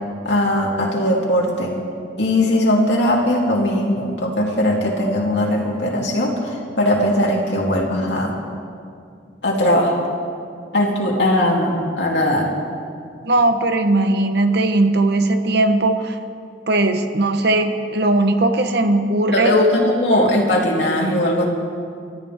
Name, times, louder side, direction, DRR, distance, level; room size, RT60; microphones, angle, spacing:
voice 1, 0.2-1.7 2.2-8.3 9.4-9.9 10.7-12.5 19.3-21.4, left 1 dB, 75° left, -2 dB, 3.1 m, -19 dB
voice 2, 13.2-16.2 16.7-19.6, right 2 dB, 65° right, 7 dB, 1.2 m, -18 dB
29.0 x 13.5 x 3.7 m, 2.3 s
head